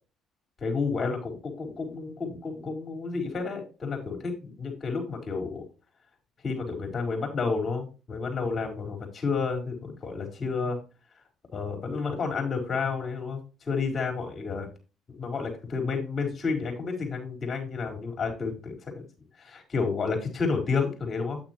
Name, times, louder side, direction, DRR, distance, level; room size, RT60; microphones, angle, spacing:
voice 1, 0.6-5.6 6.4-10.8 11.5-14.7 15.2-19.0 19.4-21.4, left 4 dB, 40° left, 3 dB, 5.1 m, -30 dB
9.7 x 8.7 x 3.1 m, 0.32 s
hypercardioid pair, 60°, 0 cm